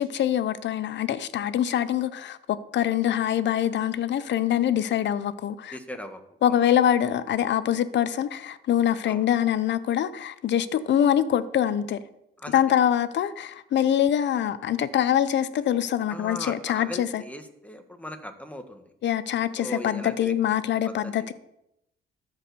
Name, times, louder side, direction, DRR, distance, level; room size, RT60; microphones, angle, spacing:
voice 1, 0.0-5.8 6.4-12.0 12.5-17.2 19.0-21.3, left 10 dB, 65° left, 0.8 m, -24 dB
voice 2, 5.7-6.6 9.0-9.3 12.4-12.6 16.1-18.9 19.6-20.3 20.8-21.3, left 1 dB, 5° left, 1.4 m, -39 dB
13.5 x 4.9 x 6.8 m
cardioid pair, 90°, 20 cm